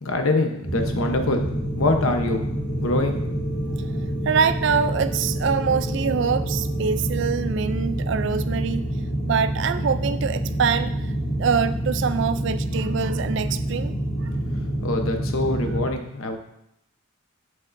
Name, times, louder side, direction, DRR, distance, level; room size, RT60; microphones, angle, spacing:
voice 1, 0.0-1.4 1.8-3.2 14.8-16.4, left 2 dB, 80° left, 5 dB, 0.9 m, -24 dB
sound 1, 0.6-15.8, right 1 dB, 30° left, 2.4 m, -27 dB
voice 2, 4.2-8.8 9.3-10.9 11.3-14.0 14.2-14.3 15.6-15.7, right 6 dB, 60° right, 12 dB, 0.4 m, -24 dB
8.1 x 7.3 x 2.6 m, 0.80 s
head